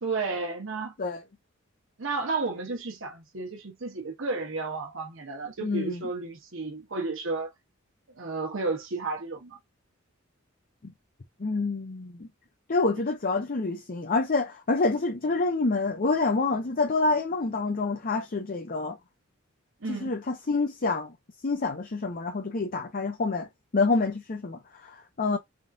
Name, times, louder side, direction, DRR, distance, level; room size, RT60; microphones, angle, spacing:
voice 1, 0.0-0.9 2.0-7.5 8.1-9.6 19.8-20.2, right 3 dB, 65° right, 1.1 m, -32 dB
voice 2, 5.6-6.0 11.4-12.3 12.7-19.0 19.9-21.1 21.4-23.5 23.7-25.4, left 3 dB, 45° left, 0.6 m, -27 dB
3.6 x 3.6 x 2.7 m
head